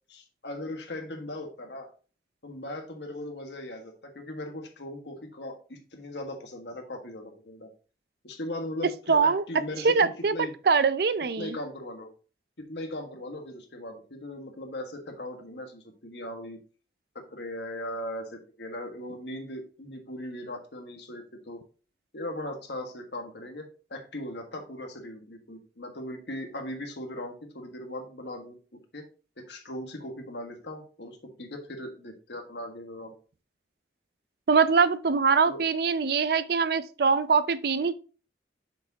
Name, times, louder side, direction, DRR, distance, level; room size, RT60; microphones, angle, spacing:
voice 1, 0.1-1.9 2.4-7.7 8.2-10.5 11.4-12.1 12.6-16.6 17.2-21.6 22.1-28.6 28.9-29.0 29.5-33.2 35.5-35.6, left 1 dB, 80° left, 1.6 m, -39 dB
voice 2, 9.1-9.4 9.8-11.6 34.5-37.9, right 5 dB, 60° right, 0.5 m, -23 dB
6.7 x 6.0 x 2.8 m
head